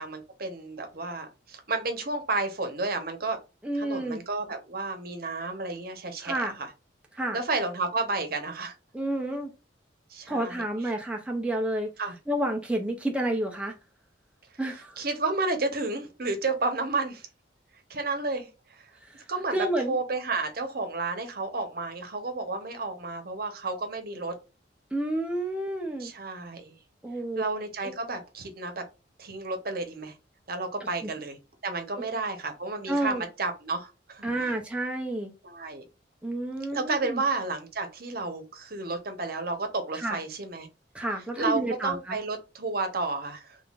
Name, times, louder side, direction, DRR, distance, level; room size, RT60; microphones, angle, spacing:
voice 1, 0.0-3.4 3.7-6.7 7.3-8.7 10.1-10.9 12.0-12.2 14.7-17.3 17.9-18.9 19.3-19.6 19.9-24.3 26.0-26.7 27.4-28.8 29.2-30.1 30.5-31.4 31.6-34.5 35.4-35.8 36.7-40.7 41.4-43.6, right 3 dB, 55° right, 0.9 m, -31 dB
voice 2, 3.6-4.2 6.2-6.5 7.2-7.4 8.9-9.5 10.3-11.9 12.3-13.7 14.6-15.0 19.2-19.3 19.5-20.0 24.9-26.1 27.0-27.4 27.8-27.9 31.0-31.1 32.9-33.2 34.2-35.3 36.2-37.2 39.9-40.2 40.9-42.2, right 1 dB, 5° right, 0.5 m, -30 dB
3.6 x 3.4 x 2.4 m
head